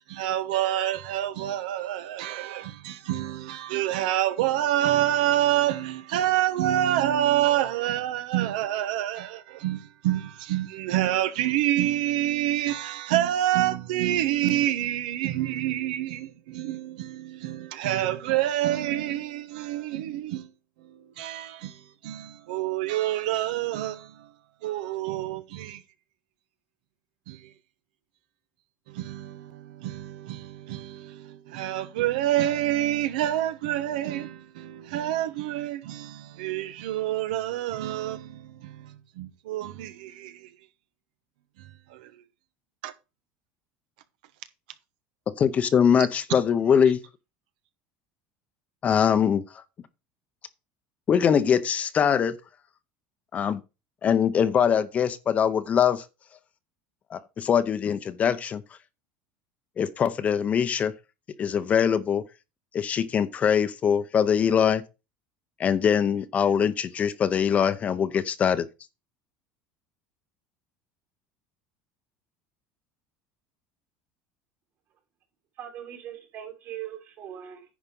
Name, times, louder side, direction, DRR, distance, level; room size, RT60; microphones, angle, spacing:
voice 1, 0.1-20.5 20.8-24.3 24.6-25.8 27.3-27.5 28.9-40.5 41.6-42.1 42.8-42.9, right 13 dB, 90° right, 1.0 m, -27 dB
voice 2, 45.4-47.0 48.8-49.4 51.1-52.4 53.3-53.6 54.0-56.0 57.1-58.6 59.8-60.9 61.4-62.2 62.7-64.8 65.6-68.7, left 8 dB, 30° left, 0.7 m, -22 dB
voice 3, 75.6-77.6, right 10 dB, 55° right, 3.1 m, -40 dB
10.0 x 4.7 x 5.3 m
supercardioid pair, 125°, 4 cm